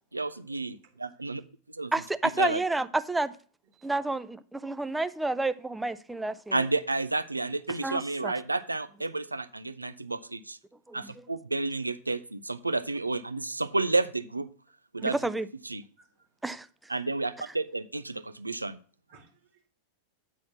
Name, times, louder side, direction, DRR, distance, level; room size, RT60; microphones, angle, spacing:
voice 1, 0.1-1.4 1.7-1.9 2.4-2.6 6.5-10.6 10.9-14.5 14.9-15.2 15.6-15.8 16.9-18.8, right 2 dB, 85° right, 0.4 m, -31 dB
voice 2, 1.9-3.3 3.8-6.7 7.8-8.3 10.9-11.1 15.0-15.5 16.4-16.7, right 2 dB, 5° right, 0.5 m, -30 dB
voice 3, 16.0-16.3 19.1-19.7, right 4 dB, 55° right, 2.1 m, -61 dB
9.0 x 4.3 x 6.9 m
figure-of-eight pair, 90°, 0 cm